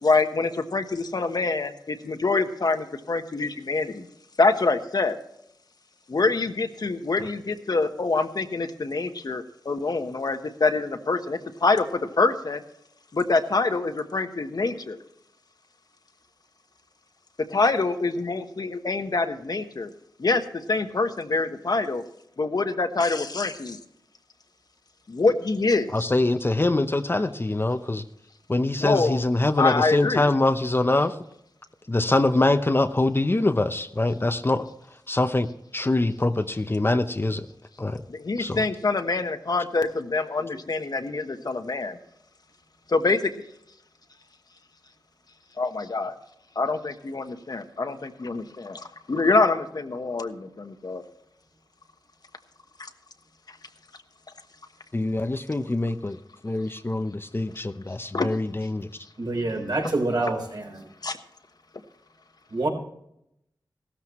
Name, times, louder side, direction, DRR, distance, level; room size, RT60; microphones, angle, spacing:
voice 1, 0.0-4.1 4.4-5.1 6.1-12.6 13.1-15.0 17.5-19.9 20.2-22.0 22.4-23.8 25.1-26.1 28.8-29.2 29.6-30.3 38.1-42.0 42.9-43.3 45.6-46.1 46.5-51.0 58.1-58.3 59.8-59.9 61.0-61.2, left 3 dB, 60° left, 7 dB, 1.2 m, -25 dB
voice 2, 25.9-28.0 28.5-31.2 31.9-34.6 35.1-37.5 37.8-38.0 38.4-38.6 54.9-56.2 56.4-58.9, left 2 dB, 30° left, 9 dB, 0.8 m, -24 dB
voice 3, 59.2-60.7 62.5-62.7, right 2 dB, 65° right, 1 dB, 4.1 m, -26 dB
16.5 x 13.5 x 3.1 m, 0.78 s
wide cardioid pair, 65°, 8 cm